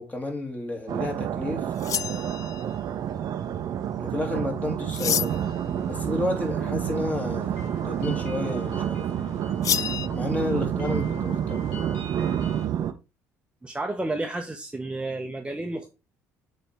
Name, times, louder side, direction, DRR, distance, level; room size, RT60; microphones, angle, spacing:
voice 1, 0.0-1.7 4.0-5.4 5.8-7.5 7.8-9.1 10.1-11.6, left 2 dB, 20° left, 2.6 m, -31 dB
sound 1, 0.9-12.9, right 9 dB, 55° right, 0.8 m, -29 dB
sound 2, 1.8-2.7 4.9-5.6 9.6-10.1, left 10 dB, 45° left, 0.4 m, -28 dB
sound 3, 5.3-12.6, left 1 dB, 80° left, 2.0 m, -42 dB
voice 2, 13.6-15.9, right 2 dB, 15° right, 1.0 m, -31 dB
6.9 x 4.5 x 3.6 m
hypercardioid pair, 60°, 8 cm